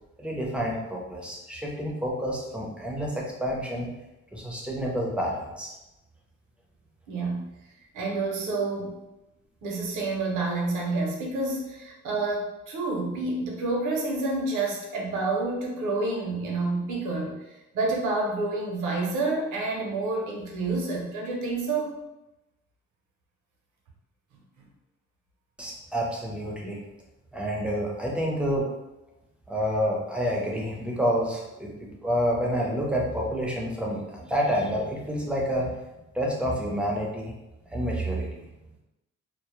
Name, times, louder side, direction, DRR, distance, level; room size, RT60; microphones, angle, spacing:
voice 1, 0.2-3.9 4.3-5.7 25.6-26.8 27.3-28.7 29.5-35.7 36.1-37.3 37.7-38.5, equal, 5° right, -2 dB, 0.5 m, -28 dB
voice 2, 7.1-7.4 7.9-9.0 9.6-17.3 17.7-22.0, right 3 dB, 80° right, -1 dB, 0.7 m, -28 dB
2.2 x 2.0 x 3.0 m, 0.97 s
cardioid pair, 90°, 30 cm